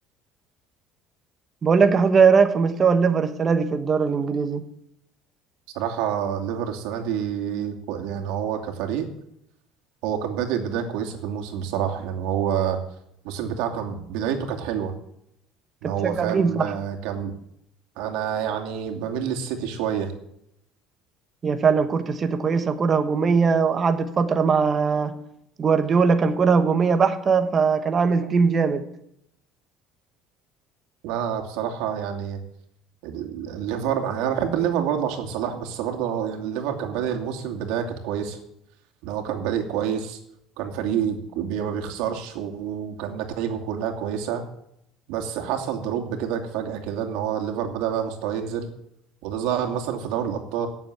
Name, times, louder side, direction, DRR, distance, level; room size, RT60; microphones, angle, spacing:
voice 1, 1.6-4.6 15.8-16.7 21.4-25.1 25.6-28.8, right 5 dB, 25° right, 9 dB, 1.3 m, -20 dB
voice 2, 5.7-9.1 10.0-12.8 13.2-14.9 15.8-17.3 18.0-20.1 31.0-32.4 33.0-38.4 39.0-40.2 40.6-44.4 45.1-48.7 49.2-50.7, right 8 dB, 80° right, 2 dB, 2.6 m, -28 dB
17.0 x 7.3 x 7.8 m, 0.75 s
cardioid pair, 150°, 0 cm